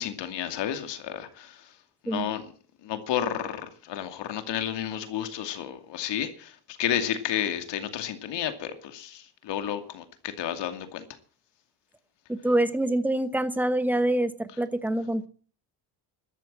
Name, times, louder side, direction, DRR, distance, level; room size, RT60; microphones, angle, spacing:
voice 1, 0.0-1.6 2.0-2.4 2.8-6.5 6.8-11.0, left 10 dB, 85° left, 2.5 m, -31 dB
voice 2, 12.3-15.3, right 1 dB, 5° right, 1.0 m, -26 dB
13.5 x 12.5 x 7.5 m
cardioid pair, 165°, 41 cm